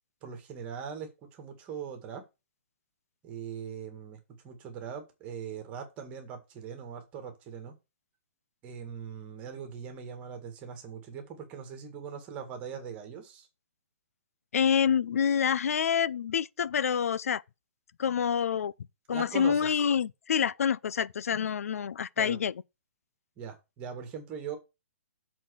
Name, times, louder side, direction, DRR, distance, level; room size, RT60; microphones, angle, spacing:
voice 1, 0.2-2.2 3.2-4.2 4.4-7.7 8.6-13.5 19.1-19.8 22.2-22.4 23.4-24.6, right 7 dB, 15° right, 1.7 m, -41 dB
voice 2, 14.5-17.4 18.0-18.7 19.1-22.5, left 7 dB, 80° left, 0.4 m, -27 dB
7.5 x 4.2 x 6.3 m
hypercardioid pair, 170°, 8 cm